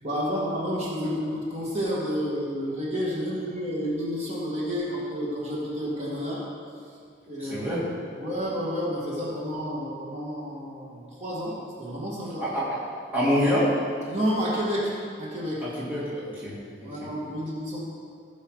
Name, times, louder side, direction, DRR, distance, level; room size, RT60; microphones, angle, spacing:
voice 1, 0.0-6.4 7.3-7.7 8.2-12.5 14.1-15.7 16.8-17.8, equal, 35° right, -6 dB, 2.2 m, -30 dB
voice 2, 7.4-7.8 12.4-12.8 13.1-13.7 15.6-17.1, equal, 10° right, -9 dB, 2.0 m, -26 dB
16.0 x 5.6 x 4.9 m, 2.3 s
head